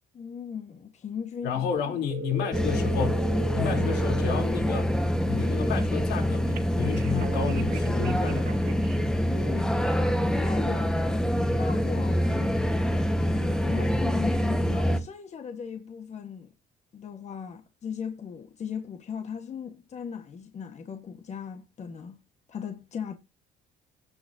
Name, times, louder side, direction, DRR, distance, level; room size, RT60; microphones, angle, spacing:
voice 1, 0.1-1.6 9.2-9.9 10.2-11.0 11.5-12.5 13.6-16.5 16.9-22.2 22.5-23.1, left 7 dB, 40° left, 1.4 m, -38 dB
voice 2, 1.4-3.2 3.5-5.0 5.2-8.5, left 7 dB, 80° left, 3.4 m, -31 dB
sound 1, 2.1-4.4 6.6-9.0 9.3-9.6, right 6 dB, 60° right, 2.0 m, -38 dB
sound 2, 2.5-15.0, equal, 5° left, 1.3 m, -25 dB
17.0 x 6.4 x 2.7 m
cardioid pair, 110°, 17 cm